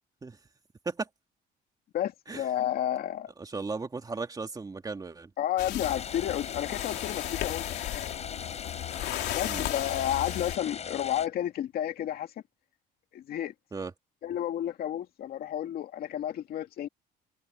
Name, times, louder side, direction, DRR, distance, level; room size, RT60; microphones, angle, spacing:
voice 1, 1.9-3.3 5.4-8.1 9.3-12.3 13.1-13.5 14.2-16.9, left 11 dB, 65° left, 2.5 m, -31 dB
voice 2, 3.4-5.3 9.4-9.7 13.7-13.9, right 4 dB, 20° right, 2.1 m, -36 dB
sound 1, 5.6-10.6, left 14 dB, 80° left, 3.6 m, -35 dB
sound 2, 5.8-11.3, left 7 dB, 40° left, 7.8 m, -39 dB
cardioid pair, 110°, 17 cm